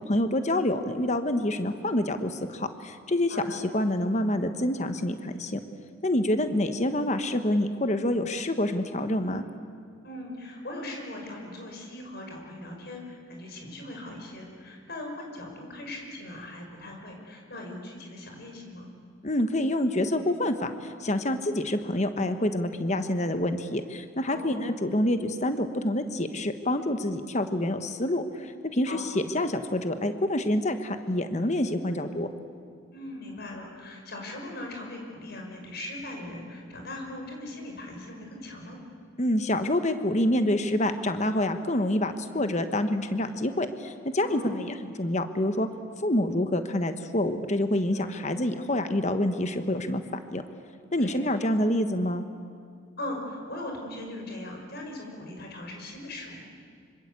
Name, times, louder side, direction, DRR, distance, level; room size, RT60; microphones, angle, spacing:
voice 1, 0.1-5.6 6.0-9.4 19.2-32.3 39.2-45.7 46.0-50.0 50.3-50.4 50.9-52.2, left 1 dB, 35° left, 8 dB, 1.2 m, -27 dB
voice 2, 3.3-3.6 10.0-18.9 24.3-24.7 28.8-29.0 32.9-38.8 44.2-44.6 47.9-48.2 51.0-51.2 53.0-56.5, left 1 dB, 50° left, 1 dB, 6.1 m, -40 dB
25.5 x 25.5 x 8.3 m, 2.3 s
head